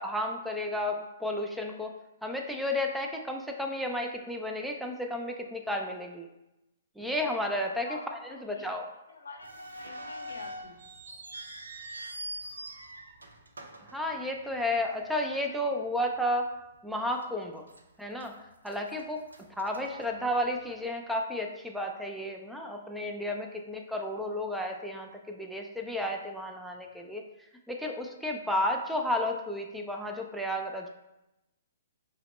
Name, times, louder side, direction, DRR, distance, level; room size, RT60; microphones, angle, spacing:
voice 1, 0.0-1.9 2.2-6.3 7.0-8.9 13.9-16.5 16.8-17.7 18.0-18.3 18.6-19.2 19.5-27.2 27.7-30.9, left 1 dB, ahead, 2 dB, 0.4 m, -32 dB
voice 2, 7.9-8.7 9.1-10.8 19.7-20.1, left 3 dB, 80° left, 3 dB, 0.7 m, -47 dB
sound 1, 9.4-14.7 15.0-15.1 15.8-16.1 16.5-16.6 17.2-17.8 18.2-20.6, right 1 dB, 85° right, 0.5 m, -44 dB
5.5 x 2.0 x 3.1 m, 0.94 s
hypercardioid pair, 125°, 0 cm